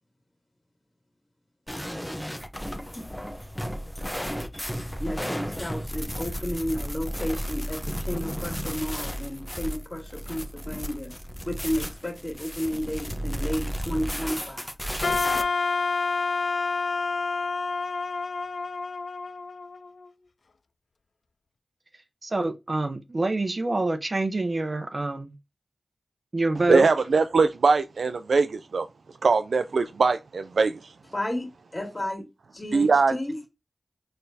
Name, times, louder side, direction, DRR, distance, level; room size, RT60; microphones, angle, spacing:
sound 1, 1.7-15.4, equal, 5° left, 0.8 m, -33 dB
voice 1, 5.0-11.1 11.4-14.7 31.1-32.2 32.5-33.3, left 1 dB, 30° left, 2.1 m, -32 dB
Wind instrument woodwind instrument, 15.0-20.1, left 4 dB, 70° left, 0.3 m, -28 dB
voice 2, 22.2-25.3 26.3-26.9, right 2 dB, 40° right, 0.7 m, -26 dB
voice 3, 26.7-28.9 29.2-30.9 32.7-33.1, right 4 dB, 80° right, 0.3 m, -21 dB
4.3 x 3.2 x 2.7 m
cardioid pair, 55°, 0 cm